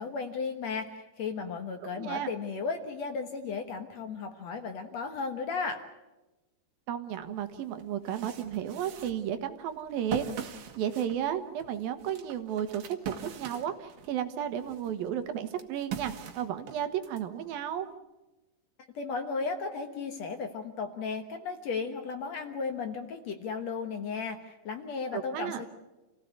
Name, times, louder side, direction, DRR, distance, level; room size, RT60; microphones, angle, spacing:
voice 1, 0.0-5.8 18.9-25.7, left 4 dB, 60° left, 6 dB, 2.2 m, -35 dB
voice 2, 1.8-2.3 6.9-17.9 25.1-25.6, right 9 dB, 80° right, 9 dB, 3.1 m, -33 dB
sound 1, 7.3-7.4 7.8-14.2 14.6-17.2, right 9 dB, 65° right, 3.0 m, -40 dB
28.5 x 16.5 x 8.2 m, 1.1 s
omnidirectional pair, 4.2 m